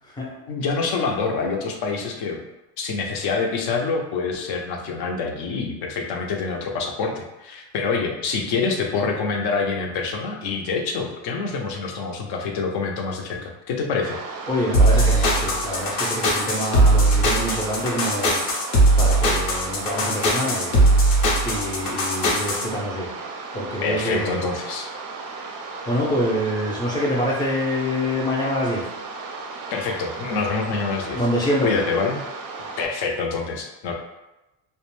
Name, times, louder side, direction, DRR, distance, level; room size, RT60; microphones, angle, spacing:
voice 1, 0.5-2.4 2.8-14.2 23.8-24.9 29.7-31.3 31.6-32.2 32.8-33.9, left 4 dB, 60° left, 2 dB, 0.6 m, -26 dB
sound 1, 14.0-32.9, right 3 dB, 45° right, 0.4 m, -35 dB
voice 2, 14.5-18.4 19.0-20.7 21.4-23.1 23.5-24.5 25.9-28.8 31.2-31.7, equal, 10° left, -3 dB, 0.5 m, -25 dB
sound 2, 14.7-22.6, right 1 dB, 80° left, 0.9 m, -19 dB
2.4 x 2.2 x 3.1 m, 0.98 s
cardioid pair, 125°, 45 cm